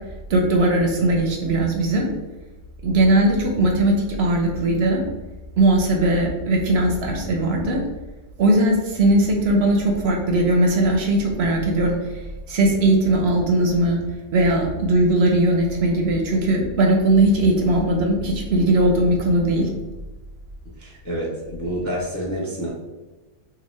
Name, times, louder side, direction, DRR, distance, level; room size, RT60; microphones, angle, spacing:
voice 1, 0.3-2.1 2.8-5.0 5.6-7.8 8.4-12.2 12.5-14.0 14.3-19.7, right 1 dB, 65° right, 1 dB, 0.7 m, -19 dB
voice 2, 20.6-22.7, equal, 25° left, -4 dB, 0.4 m, -28 dB
2.9 x 2.1 x 4.1 m, 1.2 s
omnidirectional pair, 1.3 m